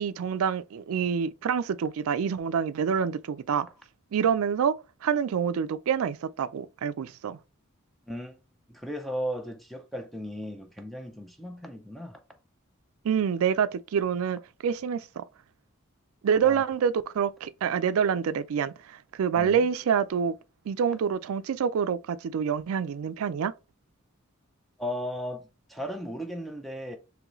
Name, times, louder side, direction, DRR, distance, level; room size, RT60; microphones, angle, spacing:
voice 1, 0.0-3.7 4.1-4.7 5.0-7.4 13.0-15.2 16.2-18.7 19.2-20.4 20.7-23.5, right 7 dB, 80° right, 0.3 m, -27 dB
voice 2, 8.1-8.4 8.7-12.2 16.4-16.6 19.4-19.7 24.8-27.0, equal, ahead, 0.4 m, -36 dB
3.8 x 3.1 x 3.0 m
head